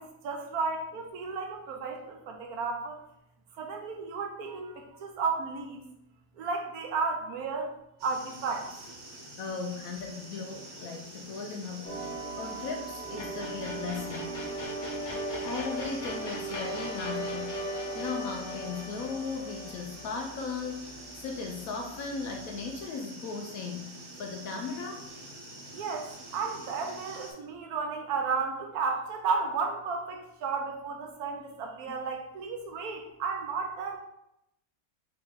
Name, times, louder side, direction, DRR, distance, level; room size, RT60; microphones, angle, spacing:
voice 1, 0.0-3.0 3.6-5.8 6.4-7.7 8.0-8.9 25.7-34.0, right 4 dB, 70° right, 3 dB, 1.0 m, -33 dB
sound 1, 8.0-27.3, right 1 dB, 90° right, 1.6 m, -47 dB
voice 2, 9.4-11.9 12.4-14.3 15.4-17.6 17.9-25.1 31.9-32.0, left 4 dB, 70° left, 3 dB, 0.9 m, -37 dB
sound 2, 11.8-21.1, right 1 dB, 35° left, 0.9 m, -37 dB
4.1 x 2.8 x 3.5 m, 0.82 s
omnidirectional pair, 1.8 m